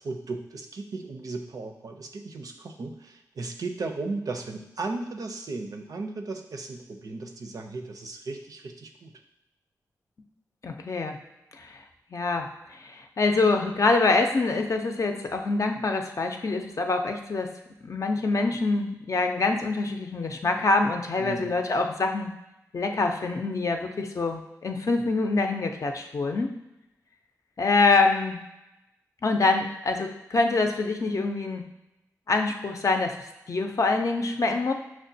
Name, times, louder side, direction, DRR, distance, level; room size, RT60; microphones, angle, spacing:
voice 1, 0.0-9.1 21.2-21.5, right 3 dB, 65° right, 4 dB, 0.5 m, -36 dB
voice 2, 10.6-11.2 11.6-11.7 12.1-17.5 17.8-22.3 22.7-26.5 27.6-28.4 29.2-31.6 32.3-33.2 33.5-34.7, left 3 dB, 55° left, 4 dB, 0.5 m, -25 dB
5.9 x 2.1 x 2.7 m, 0.92 s
cardioid pair, 45°, 7 cm